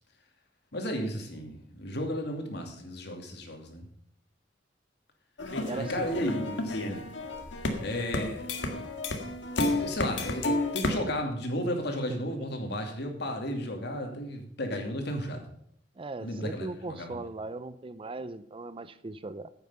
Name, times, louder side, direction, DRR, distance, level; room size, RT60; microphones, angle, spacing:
voice 1, 0.7-3.9 5.8-7.0 7.8-8.5 9.7-15.4 16.2-17.2, equal, 65° left, 3 dB, 2.6 m, -34 dB
sound 1, 5.4-11.0, left 2 dB, 85° left, 1.8 m, -31 dB
voice 2, 5.6-6.1 16.0-19.5, right 2 dB, 30° right, 14 dB, 0.5 m, -38 dB
10.0 x 8.7 x 6.8 m, 0.68 s
head